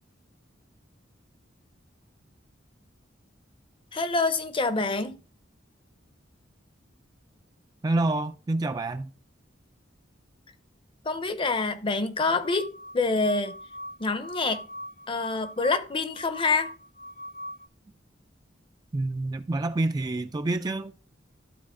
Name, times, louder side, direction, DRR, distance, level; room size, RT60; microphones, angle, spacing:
voice 1, 3.9-5.2 11.0-13.6 14.0-14.7 15.1-16.7, left 3 dB, 30° left, 0.6 m, -26 dB
voice 2, 7.8-9.1 18.9-20.9, right 2 dB, 20° right, 0.3 m, -27 dB
sound 1, 12.2-17.7, equal, 55° left, 0.9 m, -42 dB
12.0 x 4.1 x 3.7 m
head